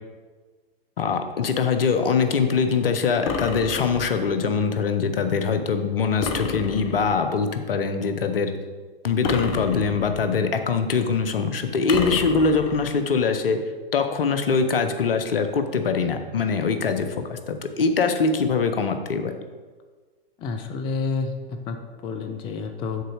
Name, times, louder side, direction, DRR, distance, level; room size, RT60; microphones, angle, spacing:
voice 1, 1.0-8.5 9.0-13.6 13.9-19.4, left 5 dB, 70° left, 8 dB, 0.8 m, -23 dB
sound 1, 3.3-4.3 6.2-7.3 9.2-10.4 11.9-13.0, left 5 dB, 35° left, 0.8 m, -30 dB
voice 2, 20.4-23.0, left 4 dB, 15° left, 6 dB, 0.4 m, -29 dB
6.6 x 4.0 x 6.4 m, 1.4 s
figure-of-eight pair, 105°, 30 cm